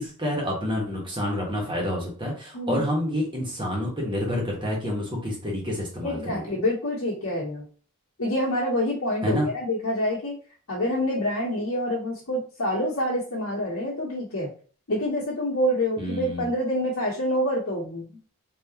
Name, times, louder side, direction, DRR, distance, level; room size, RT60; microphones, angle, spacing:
voice 1, 0.0-6.4 9.2-9.5 16.0-16.5, equal, 25° right, -2 dB, 1.3 m, -28 dB
voice 2, 6.0-7.6 8.2-10.3 10.7-14.5 14.9-18.2, left 1 dB, 75° left, -6 dB, 1.1 m, -27 dB
3.7 x 2.8 x 2.9 m, 0.41 s
head